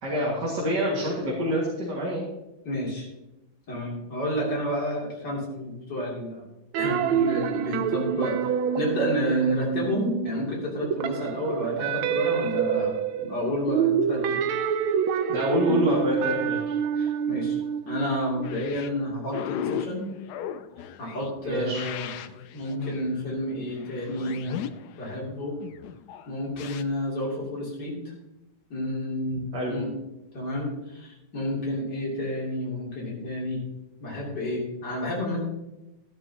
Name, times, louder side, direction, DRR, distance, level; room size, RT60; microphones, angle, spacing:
voice 1, 0.0-2.3 15.3-16.6 21.4-21.8 29.5-29.7, equal, 55° right, -5 dB, 2.6 m, -26 dB
voice 2, 2.7-3.1 3.7-6.5 6.8-8.4 8.8-12.9 13.2-14.4 17.0-17.6 17.9-20.1 21.0-22.1 22.5-24.6 25.0-25.6 26.3-28.0 28.7-29.9 30.3-33.6 34.0-35.4, left 1 dB, 55° left, -2 dB, 3.5 m, -30 dB
sound 1, 6.7-10.5 10.8-18.6, right 8 dB, 80° right, 1.5 m, -27 dB
sound 2, 18.4-26.8, left 11 dB, 75° left, 0.9 m, -37 dB
12.5 x 11.5 x 2.9 m, 0.95 s
omnidirectional pair, 2.2 m